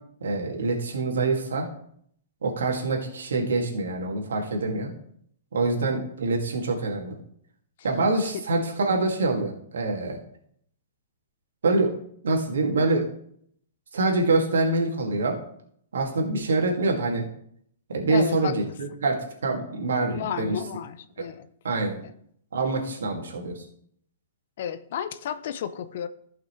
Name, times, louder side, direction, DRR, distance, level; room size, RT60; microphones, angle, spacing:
voice 1, 0.2-1.7 2.4-4.9 5.5-7.1 7.8-10.2 11.6-11.9 12.2-13.0 13.9-15.4 15.9-17.2 17.9-20.5 21.6-22.0 22.5-23.6, right 3 dB, 75° right, 1 dB, 2.2 m, -25 dB
voice 2, 18.1-18.8 20.1-21.5 24.6-26.1, left 9 dB, 60° left, 12 dB, 0.7 m, -32 dB
15.0 x 5.8 x 3.2 m, 0.66 s
hypercardioid pair, 115°, 0 cm